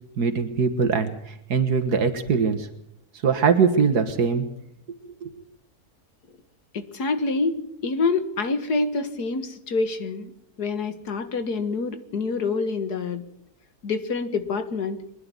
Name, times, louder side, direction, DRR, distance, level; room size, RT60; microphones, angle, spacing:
voice 1, 0.2-2.7 3.2-4.5 5.2-5.3, right 5 dB, 85° right, 7 dB, 2.1 m, -22 dB
voice 2, 6.7-10.3 10.6-13.2 13.8-15.0, left 4 dB, 85° left, 10 dB, 2.2 m, -26 dB
25.0 x 11.0 x 9.7 m, 0.80 s
omnidirectional pair, 1.6 m